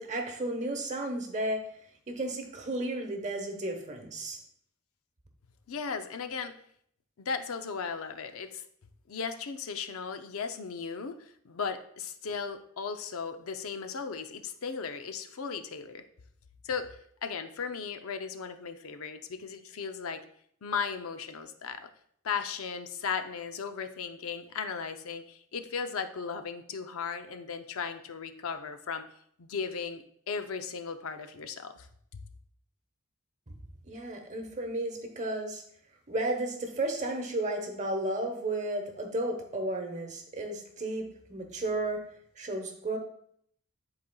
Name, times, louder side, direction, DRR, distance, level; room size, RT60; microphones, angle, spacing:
voice 1, 0.0-1.6 2.1-4.4 33.9-35.6 36.1-42.0 42.4-43.0, right 2 dB, 35° right, 4 dB, 1.0 m, -33 dB
voice 2, 5.7-6.5 7.2-8.6 9.1-16.0 16.6-20.2 20.6-21.9 22.2-29.0 29.4-31.9 32.1-32.2, left 5 dB, 75° left, 9 dB, 0.5 m, -36 dB
10.5 x 4.1 x 2.3 m, 0.67 s
head